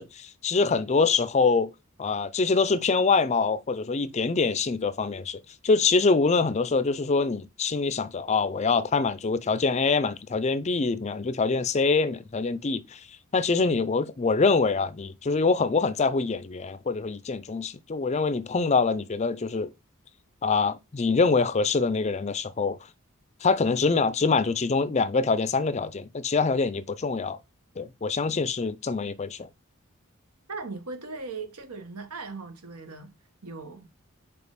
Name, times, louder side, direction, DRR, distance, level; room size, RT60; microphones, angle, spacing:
voice 1, 0.0-1.7 2.0-13.0 13.3-19.7 20.4-22.8 23.4-27.4 27.8-29.5, left 4 dB, 30° left, 0.4 m, -25 dB
voice 2, 30.5-33.1 33.4-33.9, right 4 dB, 85° right, 1.5 m, -38 dB
5.1 x 4.9 x 4.9 m
head